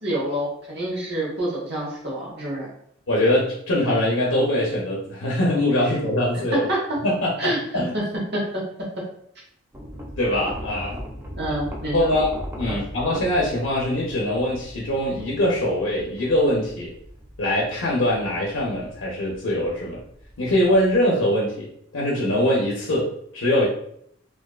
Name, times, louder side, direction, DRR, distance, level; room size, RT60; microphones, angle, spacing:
voice 1, 0.0-2.7 6.5-6.8 7.4-8.0 8.3-8.6 11.4-12.1 12.6-12.8, right 1 dB, 55° right, -4 dB, 0.9 m, -27 dB
voice 2, 3.1-6.7 7.0-7.9 10.2-11.0 11.9-12.3 12.6-16.9 17.4-20.0 20.4-23.7, left 1 dB, 80° left, -4 dB, 0.6 m, -22 dB
sound 1, 9.7-21.0, equal, 10° right, 0.4 m, -39 dB
2.4 x 2.2 x 2.3 m, 0.68 s
head